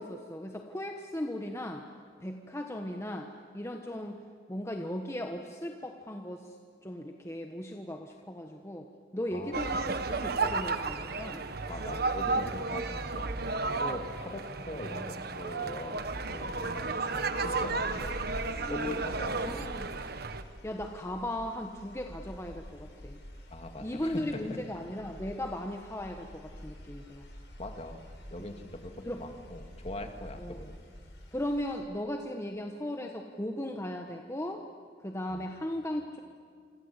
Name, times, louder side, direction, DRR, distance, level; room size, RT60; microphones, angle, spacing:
voice 1, 0.0-1.8 2.2-4.2 4.5-6.6 6.8-8.9 9.1-11.5 17.3-17.5 18.6-19.0 19.4-19.9 20.6-23.2 23.8-27.3 28.4-28.5 29.0-29.2 30.4-30.6 31.3-34.6 35.0-36.2, left 1 dB, 15° left, 3 dB, 1.3 m, -37 dB
voice 2, 9.3-9.9 11.7-13.3 13.8-18.3 18.7-19.5 23.5-24.6 27.6-28.0 28.3-30.9 35.3-35.4, left 1 dB, 35° left, 5 dB, 2.3 m, -42 dB
sound 1, 9.5-20.4, right 3 dB, 60° right, 1.4 m, -33 dB
sound 2, 17.5-31.8, equal, 70° left, 5.4 m, -48 dB
27.5 x 26.5 x 8.2 m, 2.1 s
head